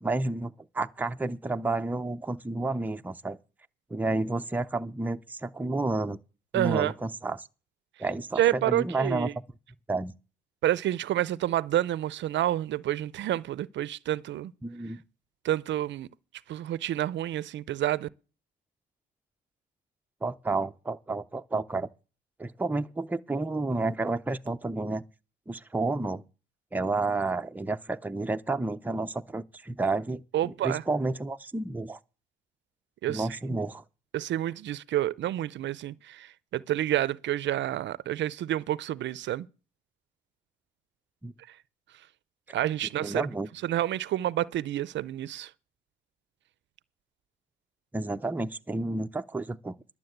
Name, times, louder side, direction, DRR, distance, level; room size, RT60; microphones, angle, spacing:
voice 1, 0.0-3.4 3.9-6.2 6.5-7.5 8.0-9.3 9.9-10.1 14.6-15.0 20.2-21.9 22.4-25.0 25.5-26.2 26.7-32.0 33.1-33.8 41.2-41.3 43.0-43.5 47.9-50.0, right 2 dB, 10° right, 0.5 m, -31 dB
voice 2, 6.5-6.9 8.4-9.3 10.6-14.5 15.4-16.1 16.5-18.1 30.3-30.8 33.0-33.3 34.1-39.5 42.5-43.3 43.6-45.5, right 13 dB, 65° right, 0.5 m, -29 dB
11.5 x 7.3 x 7.8 m
cardioid pair, 90°, 20 cm